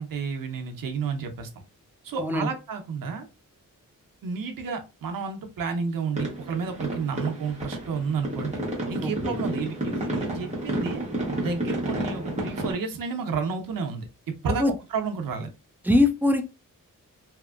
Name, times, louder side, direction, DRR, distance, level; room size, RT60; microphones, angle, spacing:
voice 1, 0.0-1.5 2.0-3.3 4.2-8.6 8.9-11.0 11.4-14.1 14.4-15.5, right 5 dB, 85° right, 5 dB, 0.7 m, -31 dB
voice 2, 2.2-2.5 9.0-9.3 14.5-14.7 15.8-16.4, left 2 dB, 5° right, 5 dB, 0.3 m, -22 dB
sound 1, 6.1-12.7, right 1 dB, 20° right, 0.9 m, -31 dB
2.8 x 2.5 x 2.4 m, 0.28 s
wide cardioid pair, 155°, 33 cm